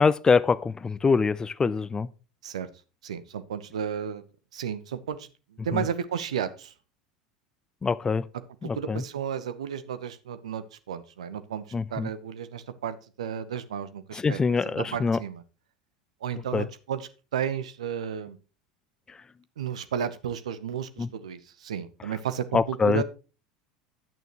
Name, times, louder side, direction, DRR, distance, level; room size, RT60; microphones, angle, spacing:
voice 1, 0.0-2.1 5.7-5.8 7.8-8.2 8.6-9.0 11.7-12.1 14.2-15.2 16.5-16.7 21.0-21.1 22.5-23.0, left 5 dB, 20° left, 0.5 m, -24 dB
voice 2, 3.0-4.2 4.5-5.3 5.6-6.7 8.6-11.6 11.9-15.4 16.2-18.4 19.6-23.0, right 8 dB, 70° right, 0.9 m, -33 dB
10.5 x 9.1 x 3.0 m
figure-of-eight pair, 75°, 4 cm